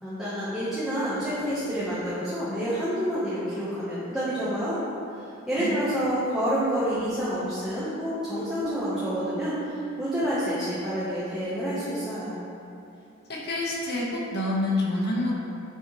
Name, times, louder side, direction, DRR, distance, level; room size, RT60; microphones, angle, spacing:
voice 1, 0.0-4.8 5.5-12.4, equal, 5° right, -12 dB, 1.6 m, -28 dB
sound 1, 8.6-12.0, right 5 dB, 90° right, 0.6 m, -38 dB
voice 2, 13.3-15.3, left 2 dB, 55° left, -4 dB, 1.8 m, -27 dB
10.5 x 6.6 x 3.5 m, 2.7 s
head